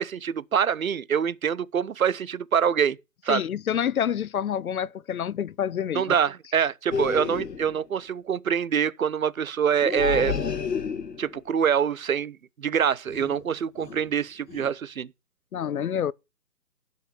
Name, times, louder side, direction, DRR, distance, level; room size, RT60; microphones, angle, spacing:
voice 1, 0.0-3.0 3.2-3.4 5.9-10.4 11.2-15.1, right 8 dB, 60° right, 0.9 m, -25 dB
voice 2, 3.3-6.1 15.5-16.1, left 9 dB, 60° left, 0.6 m, -27 dB
sound 1, 6.9-7.8 9.8-11.4 13.1-13.4 13.8-14.1 14.5-14.7, left 5 dB, 90° left, 1.6 m, -30 dB
11.5 x 5.6 x 6.3 m
figure-of-eight pair, 155°, 48 cm